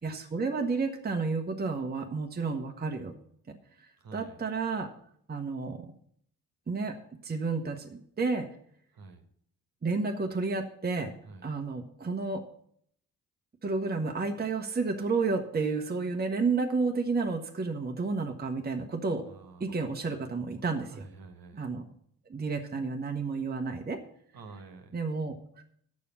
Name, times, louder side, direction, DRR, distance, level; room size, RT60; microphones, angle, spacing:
voice 1, 0.0-3.1 3.5-3.6 4.1-4.9 5.3-5.9 6.7-7.0 7.2-8.5 9.8-11.1 11.4-12.4 13.6-19.3 19.6-21.0 21.5-21.9 22.3-24.0 24.9-25.6, right 4 dB, 20° right, 4 dB, 1.1 m, -31 dB
voice 2, 4.0-4.4 8.9-9.3 11.2-11.5 19.3-19.6 20.9-21.6 24.3-25.0, right 3 dB, 45° right, 7 dB, 1.4 m, -48 dB
8.3 x 6.8 x 7.3 m, 0.67 s
figure-of-eight pair, 45°, 48 cm